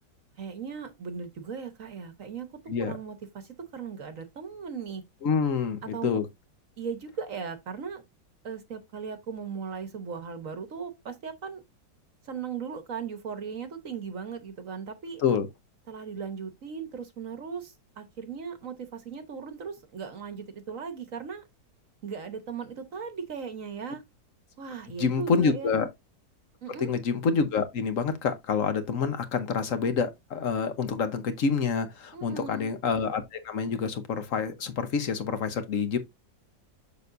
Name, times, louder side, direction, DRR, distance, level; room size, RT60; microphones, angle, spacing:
voice 1, 0.4-2.5 2.8-5.0 5.8-6.2 6.8-8.0 8.4-11.6 12.2-15.2 15.9-21.4 22.0-24.0 24.6-25.8 26.6-26.9 32.1-32.7, right 6 dB, 50° right, 1.3 m, -38 dB
voice 2, 5.2-6.2 15.2-15.5 25.0-25.9 26.8-36.0, left 5 dB, 55° left, 1.1 m, -27 dB
6.9 x 6.4 x 2.6 m
omnidirectional pair, 2.0 m